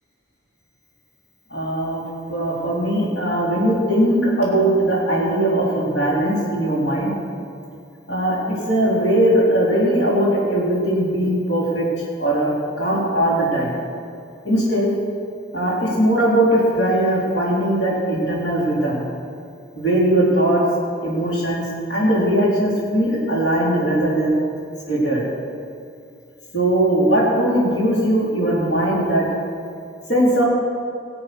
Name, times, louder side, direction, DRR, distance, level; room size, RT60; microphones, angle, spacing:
voice 1, 1.5-2.0 2.3-7.1 8.1-11.9 12.2-13.8 14.4-14.9 15.5-19.0 19.7-20.6 21.0-24.4 24.9-25.2 26.5-29.3 30.1-30.4, right 1 dB, 80° left, -6 dB, 4.2 m, -19 dB
19.5 x 7.7 x 6.4 m, 2.5 s
head